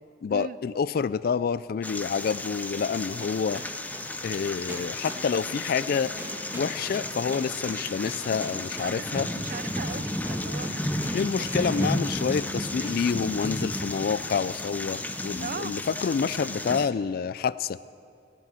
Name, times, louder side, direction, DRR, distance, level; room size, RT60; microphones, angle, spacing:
voice 1, 0.2-3.6 4.2-6.1 6.5-9.3 11.1-17.8, left 6 dB, 55° left, 17 dB, 0.3 m, -28 dB
sound 1, 1.8-16.9, left 1 dB, 10° left, 0.6 m, -33 dB
sound 2, 2.8-12.0 12.3-12.5 12.8-13.0 13.4-13.6 13.9-14.1, right 1 dB, 15° right, 1.8 m, -42 dB
voice 2, 8.8-12.0 15.4-15.7, right 6 dB, 50° right, 16 dB, 0.4 m, -40 dB
16.5 x 7.5 x 8.7 m, 2.4 s
head